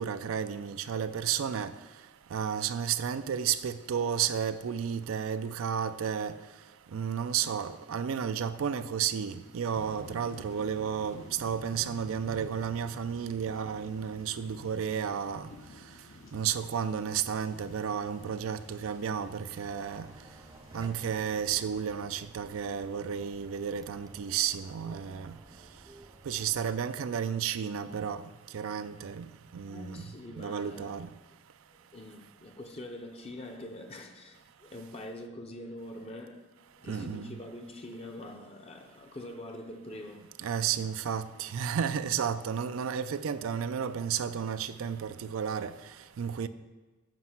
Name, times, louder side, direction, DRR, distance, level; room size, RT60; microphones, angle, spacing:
voice 1, 0.0-1.7 2.3-6.4 6.9-15.5 16.3-20.1 20.7-25.3 26.3-28.2 28.5-29.3 29.5-30.0 30.4-31.1 36.9-37.4 40.4-45.7 46.2-46.5, right 8 dB, 85° right, 0.4 m, -32 dB
sound 1, 9.7-21.9, left 2 dB, 70° left, 0.9 m, -51 dB
sound 2, 19.6-26.8, right 2 dB, 20° right, 0.4 m, -53 dB
voice 2, 29.6-31.1 31.7-40.3, left 1 dB, 30° left, 0.6 m, -44 dB
7.7 x 5.2 x 5.7 m
head